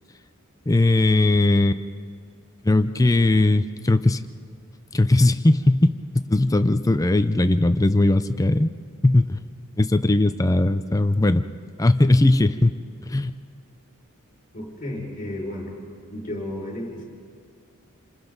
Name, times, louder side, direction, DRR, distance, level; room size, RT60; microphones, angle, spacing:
voice 1, 0.7-1.8 2.6-4.2 4.9-8.7 9.0-9.5 9.8-11.4 11.8-12.8 13.0-13.3, left 2 dB, 15° left, 11 dB, 0.5 m, -19 dB
voice 2, 14.5-15.8 16.1-17.0, left 1 dB, 35° left, -2 dB, 5.8 m, -32 dB
28.5 x 26.5 x 4.0 m, 2.3 s
head